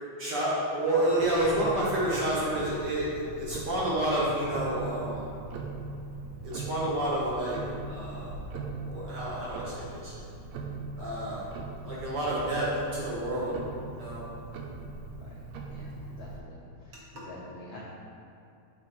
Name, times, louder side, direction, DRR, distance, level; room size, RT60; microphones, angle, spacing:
voice 1, 0.2-5.3 6.4-7.6 7.9-8.4 8.8-10.1 11.0-11.5 11.8-12.7 12.9-13.5 13.9-14.2, right 1 dB, 60° right, -7 dB, 1.1 m, -29 dB
Tick-tock, 1.2-16.4, right 3 dB, 80° right, 1.9 m, -40 dB
voice 2, 15.7-16.5 16.8-17.8, left 2 dB, 85° left, -7 dB, 1.1 m, -47 dB
6.7 x 4.3 x 4.2 m, 2.6 s
omnidirectional pair, 3.3 m